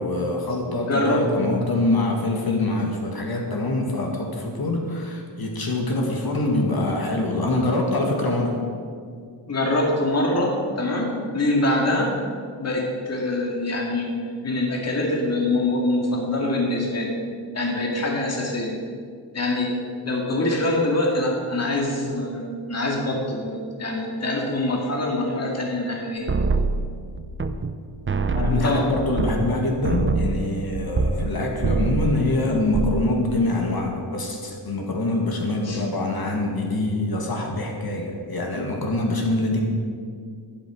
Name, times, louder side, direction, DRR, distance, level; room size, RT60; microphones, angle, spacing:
voice 1, 0.0-8.6 28.3-39.6, left 2 dB, 50° left, 1 dB, 2.1 m, -24 dB
voice 2, 0.9-1.2 9.5-12.2 12.6-17.1 17.5-18.8 19.3-19.8 20.0-22.4 22.7-26.3 28.5-28.9 35.6-35.8, left 1 dB, 35° left, -1 dB, 2.2 m, -24 dB
sound 1, 26.3-27.8 28.1-31.3 31.6-32.2 32.5-33.1, right 3 dB, 25° right, 0.7 m, -24 dB
12.0 x 11.5 x 6.3 m, 2.2 s
wide cardioid pair, 140°, 45 cm